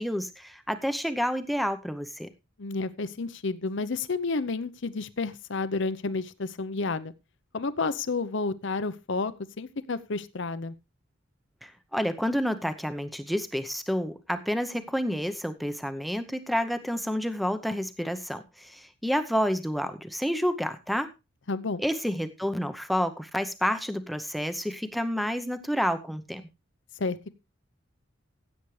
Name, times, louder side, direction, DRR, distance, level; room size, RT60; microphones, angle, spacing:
voice 1, 0.0-2.3 11.6-21.1 21.8-26.4, equal, ahead, 9 dB, 0.8 m, -29 dB
voice 2, 2.6-7.1 7.5-10.7 21.5-21.8 27.0-27.3, left 3 dB, 65° left, 14 dB, 0.8 m, -31 dB
16.0 x 8.2 x 3.2 m, 0.26 s
head